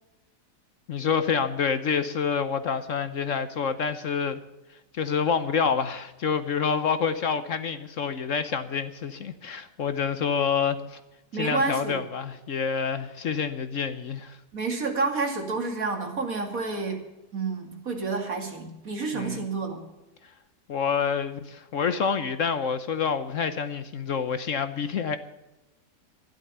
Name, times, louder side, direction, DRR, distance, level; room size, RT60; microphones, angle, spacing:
voice 1, 0.9-4.4 4.9-11.0 11.3-14.4 19.1-19.4 20.7-25.2, left 6 dB, 60° left, 11 dB, 1.1 m, -27 dB
voice 2, 11.3-12.0 14.5-19.8, right 3 dB, 60° right, 3 dB, 2.9 m, -29 dB
13.0 x 11.5 x 6.8 m, 1.0 s
omnidirectional pair, 1.7 m